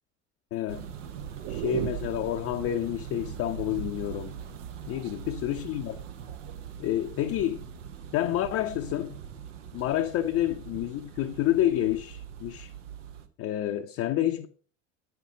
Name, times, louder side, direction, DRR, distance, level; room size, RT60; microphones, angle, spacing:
voice 1, 0.5-0.9 1.5-4.3 4.9-6.0 6.8-7.6 8.1-9.2 9.7-12.7 13.4-14.5, left 12 dB, 35° left, 0.6 m, -29 dB
sound 1, 0.7-13.3, right 8 dB, 70° right, 1.0 m, -42 dB
sound 2, 1.2-2.4 4.3-5.3 6.1-6.6, right 14 dB, 50° right, 0.5 m, -37 dB
9.1 x 5.8 x 4.9 m
figure-of-eight pair, 70°, 38 cm